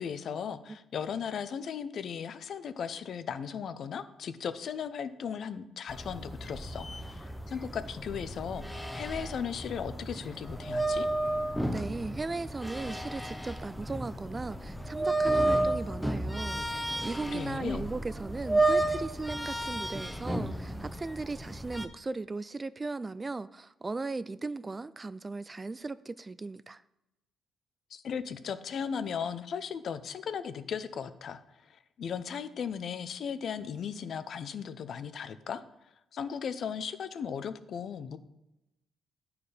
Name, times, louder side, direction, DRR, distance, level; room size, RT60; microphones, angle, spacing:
voice 1, 0.0-11.1 17.3-17.9 27.9-31.4 32.0-35.6 36.1-38.2, left 7 dB, 60° left, 0.6 m, -37 dB
sound 1, 5.9-21.9, right 2 dB, 5° left, 0.7 m, -32 dB
voice 2, 11.7-26.8, right 3 dB, 25° right, 0.3 m, -37 dB
10.0 x 4.8 x 4.9 m
cardioid pair, 90°, 0 cm